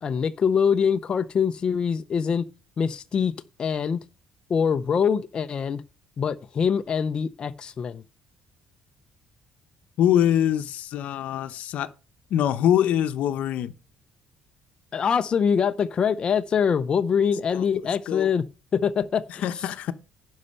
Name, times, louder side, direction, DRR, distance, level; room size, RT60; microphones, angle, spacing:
voice 1, 0.0-2.5 2.8-3.3 3.6-4.0 4.5-5.8 6.2-8.0 14.9-18.4 18.7-19.4, left 7 dB, 40° left, 0.5 m, -24 dB
voice 2, 10.0-11.9 12.3-13.7 17.5-17.7 18.1-18.3 19.4-19.9, left 10 dB, 70° left, 0.8 m, -23 dB
10.5 x 5.5 x 5.5 m
cardioid pair, 110°, 2 cm